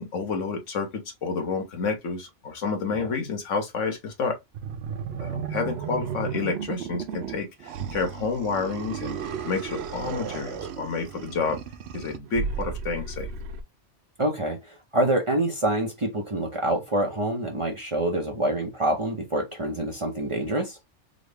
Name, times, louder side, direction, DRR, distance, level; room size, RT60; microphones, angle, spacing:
voice 1, 0.0-4.4 5.2-9.2 9.4-11.6 11.9-13.3, left 4 dB, 80° left, 1.3 m, -29 dB
sound 1, 4.5-13.6, right 6 dB, 65° right, 0.8 m, -34 dB
voice 2, 14.2-20.8, right 1 dB, 35° right, 0.6 m, -26 dB
3.8 x 2.0 x 3.3 m
omnidirectional pair, 1.3 m